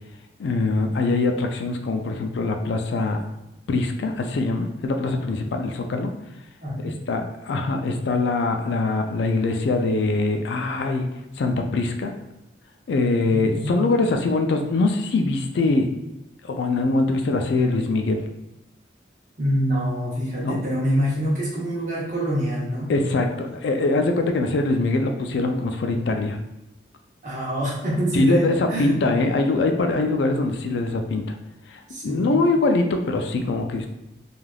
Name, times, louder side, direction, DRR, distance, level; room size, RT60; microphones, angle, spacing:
voice 1, 0.4-3.2 3.7-6.1 6.8-11.1 11.4-12.1 12.9-15.9 16.4-18.2 20.4-20.6 22.9-26.4 28.1-31.3 31.7-33.9, left 3 dB, 75° left, 5 dB, 0.3 m, -23 dB
voice 2, 6.6-7.0 13.3-13.8 19.4-22.9 27.2-29.0 31.9-32.3, equal, 45° right, -6 dB, 0.9 m, -25 dB
3.2 x 2.4 x 2.3 m, 0.93 s
head